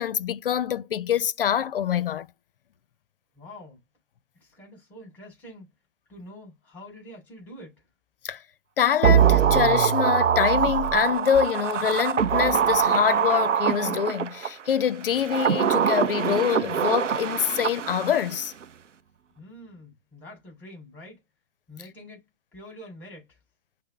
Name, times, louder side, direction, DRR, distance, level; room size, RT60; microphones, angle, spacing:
voice 1, 0.0-2.3 8.2-8.4 8.8-18.5, left 9 dB, 50° left, 0.5 m, -25 dB
voice 2, 3.3-3.8 4.4-5.7 6.1-7.9 19.4-21.2 21.7-23.4, left 1 dB, 5° left, 3.1 m, -46 dB
sound 1, 9.0-14.5 15.1-18.4 18.6-18.7, right 8 dB, 80° right, 0.5 m, -23 dB
5.6 x 2.0 x 4.1 m
figure-of-eight pair, 120°, 36 cm